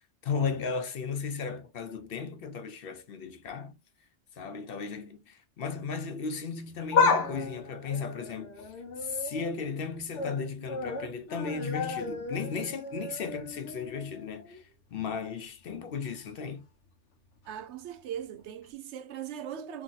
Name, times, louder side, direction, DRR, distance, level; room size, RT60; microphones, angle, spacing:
voice 1, 0.2-3.7 4.3-8.7 9.0-16.6, left 5 dB, 60° left, 0.7 m, -35 dB
sound 1, 6.7-9.5 9.9-10.4 10.7-14.6 15.0-15.1 16.1-16.2, left 4 dB, 85° left, 1.1 m, -32 dB
voice 2, 17.5-19.8, right 9 dB, 80° right, 0.9 m, -39 dB
2.8 x 2.6 x 3.9 m
omnidirectional pair, 1.2 m